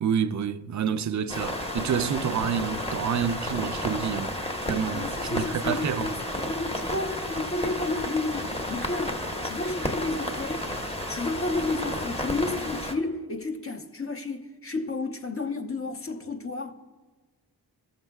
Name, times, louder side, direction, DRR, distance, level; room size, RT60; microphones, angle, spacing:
voice 1, 0.0-6.1, right 7 dB, 45° right, 0.5 m, -28 dB
sound 1, 1.3-12.9, left 1 dB, 15° left, 1.1 m, -32 dB
voice 2, 4.9-9.2 9.4-10.7 11.1-16.7, left 2 dB, 35° left, 0.9 m, -31 dB
20.5 x 7.2 x 2.3 m
cardioid pair, 55°, 41 cm